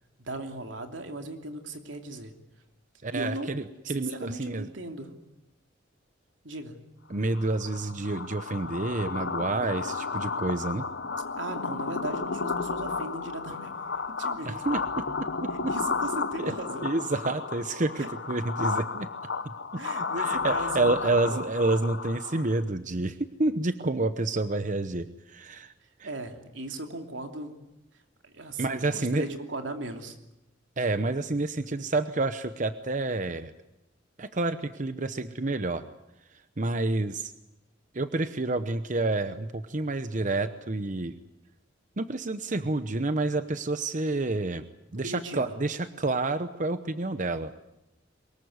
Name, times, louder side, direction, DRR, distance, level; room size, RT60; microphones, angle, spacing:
voice 1, 0.2-2.3 3.1-5.1 6.4-6.8 11.4-13.8 14.1-14.6 15.7-16.9 18.0-18.1 19.8-21.4 26.0-27.5 28.2-30.2 45.0-45.4, right 2 dB, 85° right, 5 dB, 3.0 m, -37 dB
voice 2, 3.0-4.7 7.1-10.8 14.4-15.0 15.4-15.7 16.4-16.5 16.8-19.1 19.4-19.5 20.2-25.7 26.0-26.1 28.6-29.2 30.8-33.5 34.2-35.8 36.6-37.3 37.9-41.1 42.0-44.6 44.9-47.5, right 2 dB, 40° right, 10 dB, 0.9 m, -29 dB
sound 1, 7.3-22.6, left 4 dB, 75° left, 1.1 m, -33 dB
23.5 x 21.0 x 9.5 m, 0.91 s
head